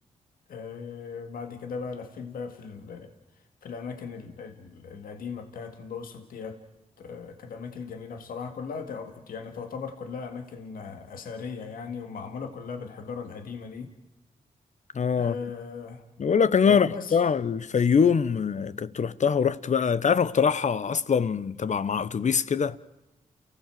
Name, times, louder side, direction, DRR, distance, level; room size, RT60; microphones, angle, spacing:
voice 1, 0.5-3.1 3.6-6.6 7.0-13.9 15.2-16.0 16.7-17.2, left 5 dB, 90° left, 2.0 m, -38 dB
voice 2, 14.9-15.4 16.2-22.8, left 6 dB, 55° left, 1.0 m, -23 dB
29.0 x 16.5 x 7.8 m
cardioid pair, 60°, 14 cm